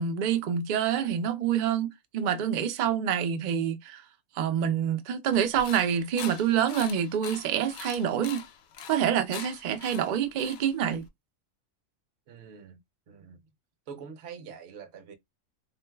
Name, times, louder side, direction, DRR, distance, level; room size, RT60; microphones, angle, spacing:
voice 1, 0.0-4.0 4.4-8.4 8.9-11.0, right 8 dB, 80° right, 0.4 m, -27 dB
sound 1, 5.3-11.1, left 8 dB, 65° left, 0.8 m, -43 dB
voice 2, 12.3-12.8 13.1-13.4 13.9-15.1, right 6 dB, 60° right, 0.8 m, -44 dB
3.8 x 2.4 x 2.2 m
omnidirectional pair, 1.4 m